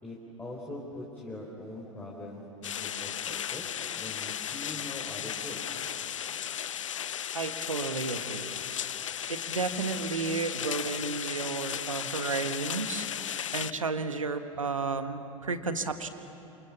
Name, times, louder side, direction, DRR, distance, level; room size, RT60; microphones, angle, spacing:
voice 1, 0.0-3.7 4.0-5.6 9.1-9.2 12.2-12.3, left 1 dB, 10° left, -4 dB, 4.3 m, -42 dB
sound 1, 2.6-13.7, left 9 dB, 70° left, 0.7 m, -35 dB
voice 2, 7.3-8.6 9.3-13.1 13.5-16.1, right 4 dB, 80° right, 9 dB, 1.5 m, -32 dB
29.0 x 27.5 x 7.3 m, 2.9 s
figure-of-eight pair, 90°, 17 cm